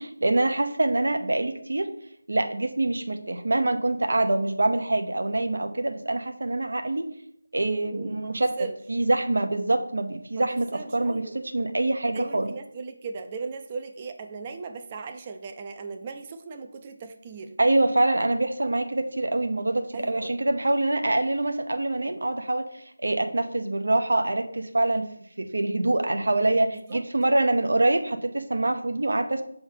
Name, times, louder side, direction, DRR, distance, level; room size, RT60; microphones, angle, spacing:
voice 1, 0.0-1.9 2.3-7.1 7.5-8.5 8.9-11.2 11.5-12.5 17.6-25.1 25.4-29.4, right 2 dB, 70° right, 7 dB, 0.7 m, -25 dB
voice 2, 7.9-8.8 10.3-11.4 12.1-17.6 19.9-20.3 26.7-27.0, right 4 dB, 25° right, 6 dB, 0.5 m, -38 dB
5.5 x 3.4 x 5.6 m, 0.71 s
figure-of-eight pair, 165°, 0 cm